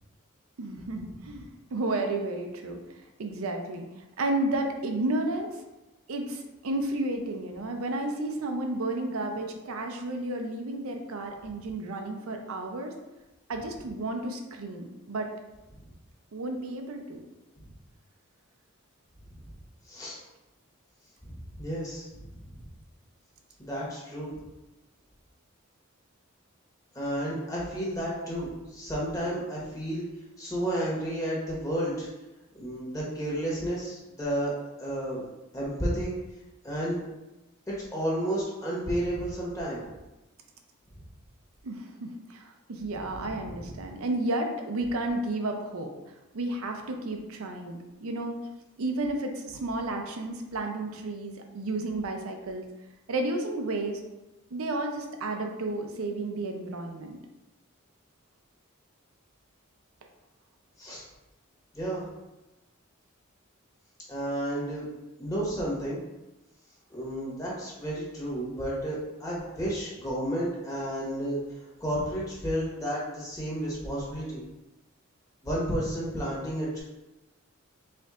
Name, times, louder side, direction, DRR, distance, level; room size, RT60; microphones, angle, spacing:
voice 1, 0.6-2.8 3.2-3.8 4.2-5.5 6.1-12.9 13.5-15.3 16.3-17.2 41.6-45.9 46.3-48.4 48.8-52.6 53.1-54.0 54.5-57.2, right 2 dB, 80° right, 3 dB, 0.5 m, -32 dB
voice 2, 19.8-20.2 21.2-22.1 23.6-24.3 26.9-30.0 30.4-32.1 32.5-34.5 34.8-35.2 35.5-36.1 36.6-37.0 37.7-39.8 43.2-43.7 60.8-61.0 61.7-62.1 64.1-64.9 65.2-66.0 66.9-71.4 71.8-74.4 75.4-76.8, right 1 dB, 15° left, -6 dB, 1.1 m, -32 dB
4.5 x 3.6 x 2.4 m, 1.0 s
head